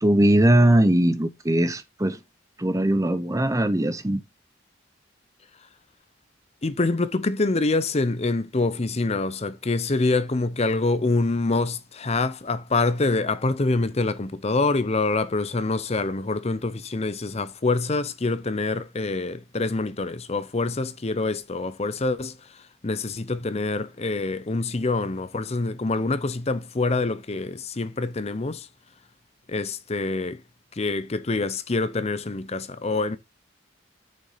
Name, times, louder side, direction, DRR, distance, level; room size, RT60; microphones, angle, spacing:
voice 1, 0.0-2.2 2.6-4.2, right 1 dB, 15° right, 0.7 m, -20 dB
voice 2, 6.6-28.7 29.5-30.4 30.7-33.2, left 3 dB, 35° left, 0.6 m, -26 dB
6.7 x 6.3 x 5.6 m
head